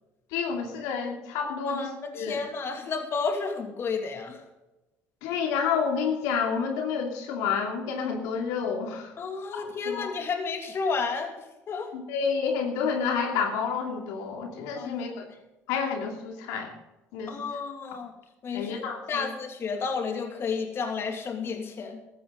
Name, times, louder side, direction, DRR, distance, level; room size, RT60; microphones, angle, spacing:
voice 1, 0.3-1.9 2.1-2.4 5.2-9.1 9.6-10.1 11.9-15.3 15.7-16.7 17.1-17.4 18.5-19.3, left 6 dB, 85° left, 2 dB, 2.6 m, -29 dB
voice 2, 1.6-4.4 9.2-11.3 11.7-11.9 14.7-15.0 17.3-18.1 18.4-18.8 19.1-22.0, left 5 dB, 45° left, 4 dB, 2.7 m, -31 dB
15.0 x 13.5 x 4.0 m, 1.0 s
supercardioid pair, 95°, 6 cm